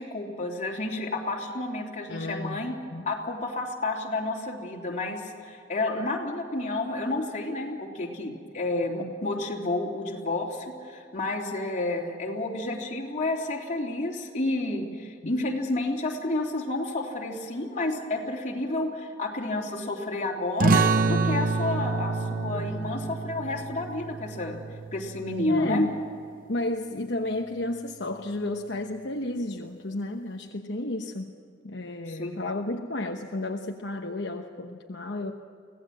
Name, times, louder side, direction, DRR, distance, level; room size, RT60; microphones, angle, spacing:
voice 1, 0.0-2.7 3.0-24.6 24.9-25.9 32.1-32.3, left 2 dB, 40° left, -1 dB, 3.5 m, -30 dB
voice 2, 2.1-2.7 2.9-3.1 15.2-15.3 22.6-22.9 25.5-25.9 26.5-31.3 31.6-35.3, left 2 dB, 65° left, 2 dB, 1.1 m, -32 dB
sound 1, 20.6-25.8, right 3 dB, 50° right, 0.7 m, -27 dB
25.0 x 17.5 x 7.7 m, 2.5 s
head